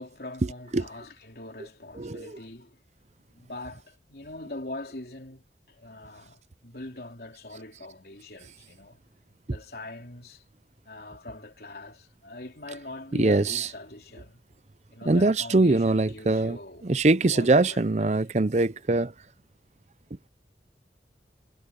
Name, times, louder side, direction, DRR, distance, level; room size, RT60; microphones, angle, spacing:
voice 1, 0.0-2.8 3.3-9.0 9.4-10.4 10.8-14.4 14.9-16.9 17.3-18.1, left 2 dB, 60° left, 3.4 m, -42 dB
voice 2, 2.0-2.3 13.2-13.7 15.1-16.6 16.8-19.1, right 2 dB, 40° right, 0.6 m, -22 dB
head